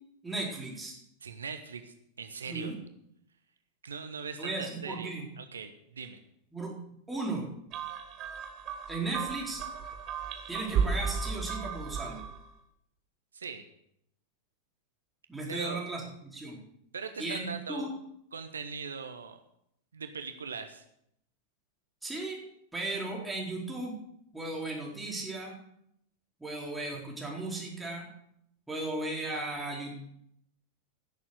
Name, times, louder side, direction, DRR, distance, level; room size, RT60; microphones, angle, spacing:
voice 1, 0.2-0.9 2.5-2.7 4.4-5.3 6.5-6.7 7.1-7.5 8.9-9.6 10.5-12.2 15.3-16.6 17.2-17.9 22.0-22.4 22.7-23.9 24.3-25.6 26.4-28.1 28.7-30.0, right 2 dB, 5° right, -3 dB, 4.2 m, -36 dB
voice 2, 1.2-2.8 3.8-6.2 13.3-13.7 15.5-15.8 16.9-17.9 18.3-19.4 19.9-20.8, right 5 dB, 70° right, 8 dB, 1.0 m, -40 dB
sound 1, 7.7-12.5, right 6 dB, 35° right, 1.7 m, -34 dB
16.0 x 7.2 x 6.6 m, 0.74 s
figure-of-eight pair, 90°, 0 cm